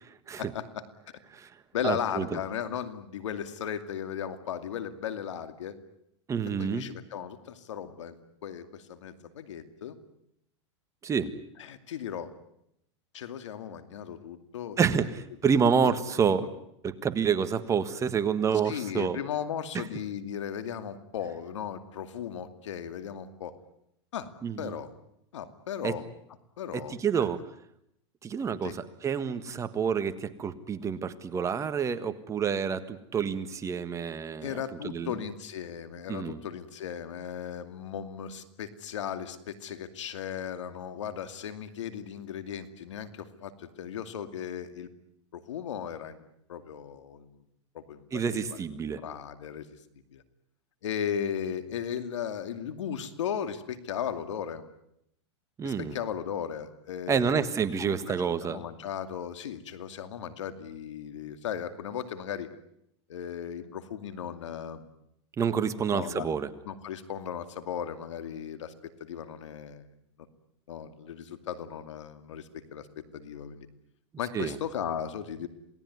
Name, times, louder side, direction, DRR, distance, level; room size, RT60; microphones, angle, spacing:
voice 1, 0.4-0.8 1.7-5.8 6.6-10.0 11.6-12.3 13.1-14.8 15.4-15.9 16.4-16.5 18.6-23.5 24.1-24.3 24.6-24.9 25.3-26.0 26.6-27.0 28.6-28.7 34.4-44.9 45.3-47.4 47.7-48.6 49.0-49.7 50.1-50.2 50.8-54.6 55.6-57.4 57.8-62.5 63.1-64.9 65.9-66.3 66.6-69.9 70.7-72.9 73.1-73.7 74.2-75.5, left 8 dB, 85° left, 10 dB, 2.5 m, -36 dB
voice 2, 1.8-2.4 6.3-6.8 11.0-11.3 14.8-16.5 16.8-19.2 24.4-24.8 25.8-25.9 26.9-27.4 28.2-34.5 34.8-35.1 36.1-36.4 48.1-49.0 55.6-56.0 57.1-58.6 65.4-66.5 74.3-74.6, right 6 dB, 20° right, 10 dB, 1.6 m, -28 dB
27.5 x 18.5 x 9.6 m, 0.77 s
supercardioid pair, 130°, 15 cm